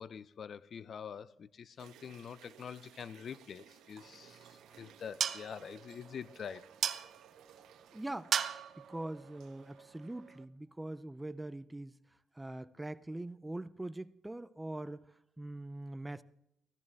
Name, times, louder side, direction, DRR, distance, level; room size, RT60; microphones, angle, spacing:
voice 1, 0.0-4.4 4.8-6.7, left 7 dB, 55° left, 0.4 m, -45 dB
sound 1, 1.8-9.8, right 9 dB, 85° right, 1.0 m, -60 dB
sound 2, 4.0-10.4, right 8 dB, 60° right, 0.7 m, -40 dB
voice 2, 7.9-8.3 8.9-12.0 12.4-15.1 15.4-16.2, right 1 dB, 10° right, 0.5 m, -42 dB
15.5 x 14.0 x 3.4 m
cardioid pair, 90°, 0 cm